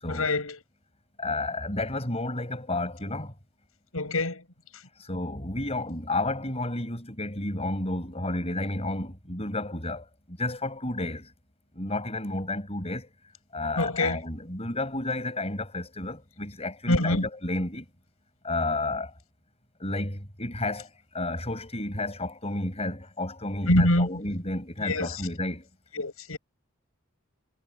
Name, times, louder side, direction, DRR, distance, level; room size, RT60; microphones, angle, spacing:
voice 1, 0.1-0.6 3.9-4.4 13.8-14.2 16.9-17.3 23.7-24.1 24.8-25.2 26.0-26.4, left 1 dB, 75° left, 7.9 m, -25 dB
voice 2, 1.2-3.3 5.0-11.3 11.7-13.1 13.5-17.9 18.4-19.1 19.8-20.9 21.1-25.7, left 2 dB, 30° left, 7.7 m, -31 dB
head